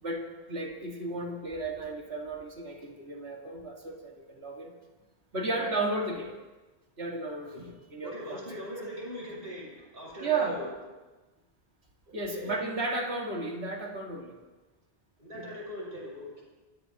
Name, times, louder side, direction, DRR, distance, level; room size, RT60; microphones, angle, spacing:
voice 1, 0.0-4.7 5.3-6.3 7.0-8.4 10.2-10.6 12.1-14.4 15.3-15.5, right 3 dB, 80° right, 0 dB, 2.3 m, -34 dB
voice 2, 8.0-10.7 12.1-12.6 15.2-16.4, equal, 60° right, -5 dB, 7.2 m, -40 dB
27.0 x 16.5 x 2.9 m, 1.2 s
omnidirectional pair, 1.1 m